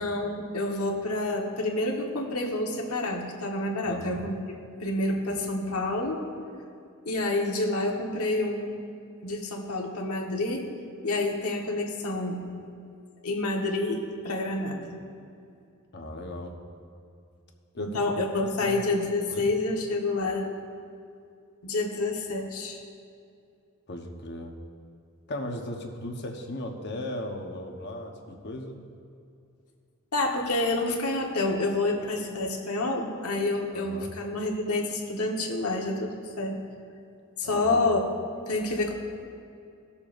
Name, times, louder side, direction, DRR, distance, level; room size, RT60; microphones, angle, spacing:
voice 1, 0.0-4.4 4.8-6.2 7.0-8.8 9.2-10.7 11.0-12.5 13.2-15.0 17.7-20.5 21.6-22.8 30.1-36.6 37.4-38.0 38.5-38.9, left 2 dB, 90° left, 0 dB, 1.3 m, -28 dB
voice 2, 3.9-4.2 15.9-16.6 17.7-18.0 18.6-18.8 19.3-19.5 23.9-24.6 25.3-28.8 33.7-34.1 37.4-38.1, left 1 dB, 50° left, 2 dB, 1.1 m, -37 dB
20.0 x 6.9 x 2.6 m, 2.5 s
head